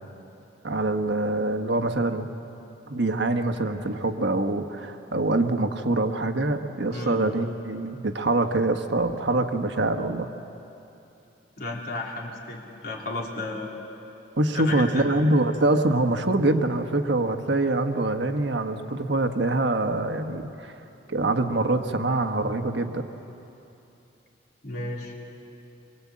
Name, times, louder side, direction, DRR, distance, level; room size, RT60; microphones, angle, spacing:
voice 1, 0.6-2.3 2.9-10.3 14.4-20.7 21.1-23.0, right 2 dB, 65° right, 6 dB, 1.4 m, -24 dB
voice 2, 11.6-13.7 14.5-15.0 24.6-25.2, left 2 dB, 50° left, -2 dB, 3.9 m, -33 dB
23.5 x 23.5 x 8.6 m, 2.9 s
head